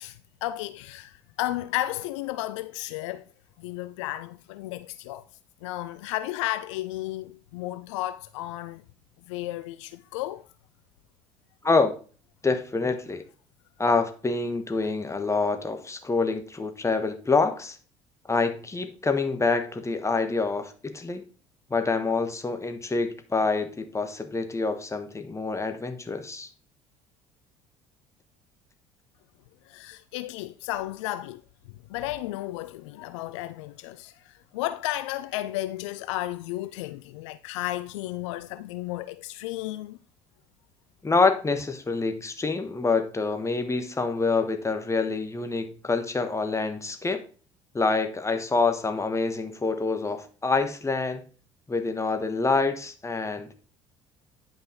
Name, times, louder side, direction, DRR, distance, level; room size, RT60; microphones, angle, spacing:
voice 1, 0.0-3.2 3.6-5.3 5.6-8.8 9.3-10.5 29.7-31.4 31.9-40.0, left 16 dB, 70° left, 0.4 m, -33 dB
voice 2, 12.4-13.2 13.8-17.8 18.3-21.2 21.7-26.5 41.0-47.2 47.7-51.3 51.7-53.5, left 3 dB, 20° left, 1.5 m, -26 dB
9.8 x 5.6 x 3.8 m
hypercardioid pair, 60°, 16 cm